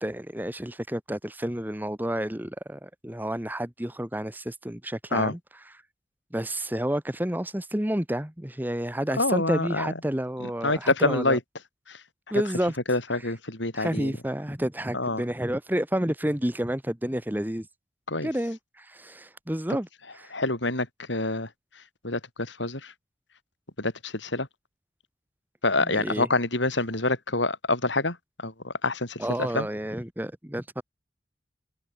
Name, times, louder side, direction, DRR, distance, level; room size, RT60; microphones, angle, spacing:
voice 1, 0.0-5.4 6.3-11.4 12.3-12.7 13.7-17.7 18.2-19.9 20.2-20.3 25.9-26.3 29.2-30.8, equal, 10° right, 1.3 m, -30 dB
voice 2, 9.2-9.9 10.4-11.4 11.9-12.0 12.9-14.2 14.9-15.2 18.1-18.3 20.3-22.9 23.8-24.5 25.6-29.7, left 2 dB, 75° left, 5.9 m, -27 dB
head